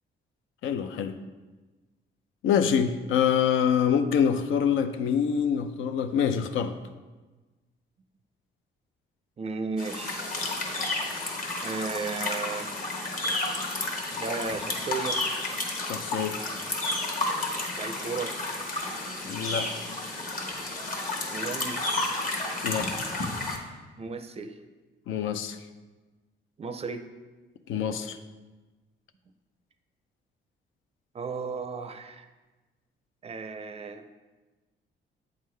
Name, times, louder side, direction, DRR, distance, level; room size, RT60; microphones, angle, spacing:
voice 1, 0.6-1.1 2.4-6.8 15.8-16.4 19.3-19.7 22.6-22.9 25.1-25.6 27.7-28.2, left 8 dB, 80° left, 9 dB, 0.5 m, -25 dB
voice 2, 9.4-10.5 11.6-12.7 14.1-15.2 17.8-18.4 21.3-21.8 24.0-24.6 26.6-27.1 31.1-32.3 33.2-34.0, right 4 dB, 30° right, 8 dB, 0.4 m, -34 dB
sound 1, 9.8-23.6, left 2 dB, 40° left, 1.1 m, -31 dB
8.0 x 3.7 x 3.2 m, 1.2 s
cardioid pair, 90°, 20 cm